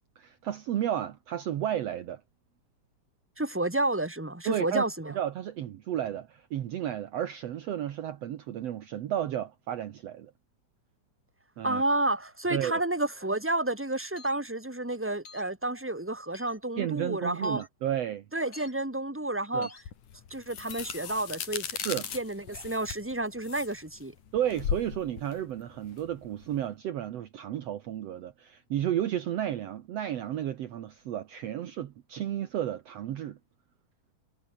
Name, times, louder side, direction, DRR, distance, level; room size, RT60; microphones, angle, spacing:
voice 1, 0.2-2.2 4.5-10.3 11.6-11.8 12.5-12.8 16.8-18.3 19.5-19.7 21.8-22.1 24.3-33.4, right 11 dB, 65° right, 2.1 m, -32 dB
voice 2, 3.4-5.1 11.6-17.6 18.3-19.7 20.3-21.8 22.1-24.1, right 2 dB, 5° right, 3.6 m, -30 dB
sound 1, 14.2-14.4 15.3-15.5 16.3-16.6 17.4-17.7 18.5-18.7 19.6-19.8 20.7-21.0 21.8-22.0, left 4 dB, 50° left, 5.4 m, -49 dB
sound 2, 19.9-26.6, left 8 dB, 85° left, 3.9 m, -38 dB
omnidirectional pair, 3.6 m